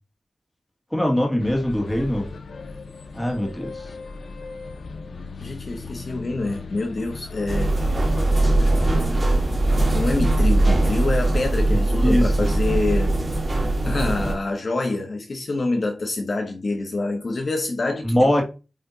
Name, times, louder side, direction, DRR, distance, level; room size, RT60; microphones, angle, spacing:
voice 1, 0.9-2.3 3.1-3.9 12.0-12.5 18.0-18.4, left 1 dB, 10° left, 2.0 m, -22 dB
sound 1, 1.4-10.9, left 4 dB, 75° left, 0.9 m, -36 dB
voice 2, 5.4-7.7 9.9-13.2 13.8-18.4, left 2 dB, 50° left, 1.1 m, -26 dB
sound 2, 7.5-14.3, right 2 dB, 30° right, 2.6 m, -20 dB
8.4 x 3.3 x 4.0 m
wide cardioid pair, 120°, 0 cm